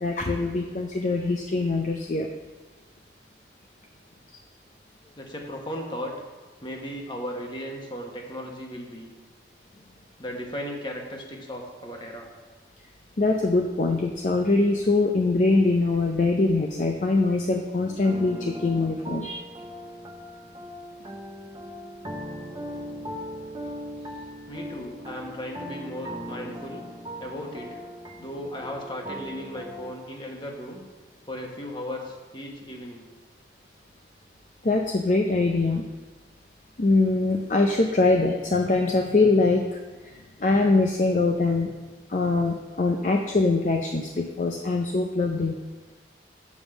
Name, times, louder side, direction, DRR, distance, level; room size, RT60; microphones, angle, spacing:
voice 1, 0.0-2.3 13.2-19.4 34.6-35.8 36.8-41.7 42.1-45.6, left 3 dB, 40° left, 3 dB, 0.5 m, -23 dB
voice 2, 5.1-6.1 6.6-9.1 10.2-12.3 23.6-23.8 24.5-26.8 27.2-27.8 28.2-30.8 31.3-33.1, equal, 25° left, 0 dB, 1.2 m, -36 dB
sound 1, 17.9-29.9, equal, 25° right, 0.8 m, -39 dB
7.3 x 5.2 x 7.1 m, 1.3 s
head